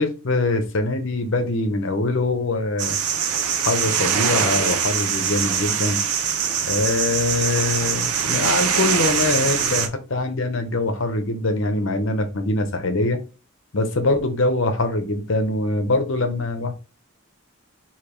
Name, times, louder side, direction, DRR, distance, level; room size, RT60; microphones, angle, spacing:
voice 1, 0.0-3.0 3.6-6.0 6.7-13.2 13.7-16.7, left 2 dB, 60° left, 7 dB, 0.8 m, -23 dB
sound 1, 2.8-9.9, right 7 dB, 85° right, 0.6 m, -23 dB
4.9 x 2.9 x 3.0 m, 0.32 s
head